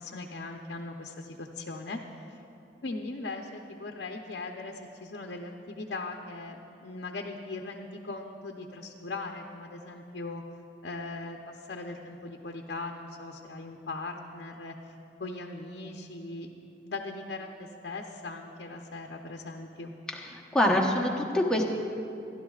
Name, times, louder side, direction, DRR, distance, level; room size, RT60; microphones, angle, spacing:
voice 1, 0.0-2.0 2.8-10.4 10.8-14.9 15.2-16.5 16.8-19.9, left 3 dB, 75° left, 1 dB, 0.7 m, -39 dB
voice 2, 20.1-21.6, left 1 dB, 5° left, -2 dB, 1.0 m, -25 dB
25.0 x 11.5 x 2.4 m, 2.7 s
head